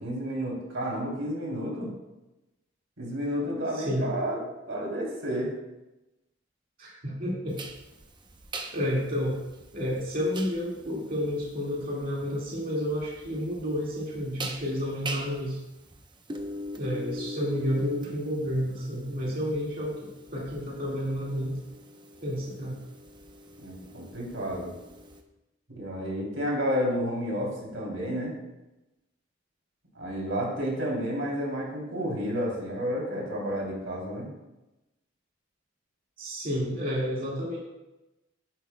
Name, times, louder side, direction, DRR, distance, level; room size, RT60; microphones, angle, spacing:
voice 1, 0.0-1.9 3.0-4.4 4.7-5.5 23.6-24.7 25.7-28.3 29.9-34.3, equal, 80° right, -2 dB, 3.2 m, -31 dB
voice 2, 3.7-4.1 6.8-7.6 8.7-9.4 9.7-15.6 16.8-21.6 22.2-22.8 36.2-37.6, equal, 45° right, -5 dB, 2.0 m, -30 dB
sound 1, 7.6-25.2, right 1 dB, 25° right, 0.8 m, -42 dB
11.0 x 9.7 x 2.3 m, 0.99 s
head